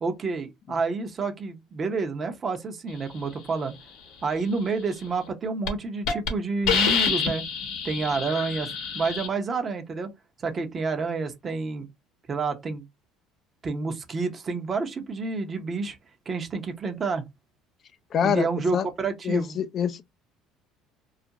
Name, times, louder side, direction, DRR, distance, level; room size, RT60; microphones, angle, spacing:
voice 1, 0.0-3.7 4.2-7.5 7.8-8.7 8.9-10.1 10.4-11.9 12.3-12.8 13.6-16.0 16.3-17.2 18.2-19.6, right 4 dB, 35° right, 0.7 m, -29 dB
Hiss, 5.1-5.3 5.7-5.8 6.1-6.3 6.7-9.3, left 6 dB, 70° left, 0.8 m, -26 dB
voice 2, 18.1-18.5 18.7-18.9 19.2-20.0, left 8 dB, 45° left, 0.3 m, -25 dB
2.4 x 2.1 x 2.7 m
supercardioid pair, 85°, 0 cm